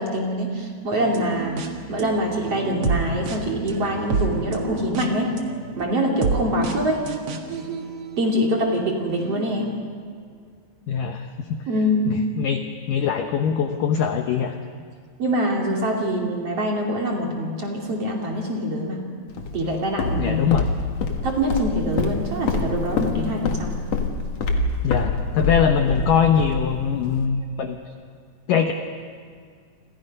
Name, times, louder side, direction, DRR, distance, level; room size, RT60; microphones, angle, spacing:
voice 1, 0.0-1.6 1.9-5.3 5.8-7.0 8.2-9.7 11.7-12.2 15.2-19.0 19.5-20.6 21.2-23.8, equal, 40° right, 0 dB, 2.9 m, -24 dB
sound 1, 0.9-8.7 9.2-9.7, right 4 dB, 60° right, 1.6 m, -30 dB
voice 2, 10.9-11.6 12.1-14.6 20.2-20.7 24.8-27.8 28.5-28.7, left 7 dB, 85° left, 5 dB, 1.9 m, -22 dB
Walk footsteps, 19.4-27.3, left 4 dB, 55° left, 2.0 m, -26 dB
30.0 x 26.0 x 5.4 m, 2.1 s
omnidirectional pair, 5.3 m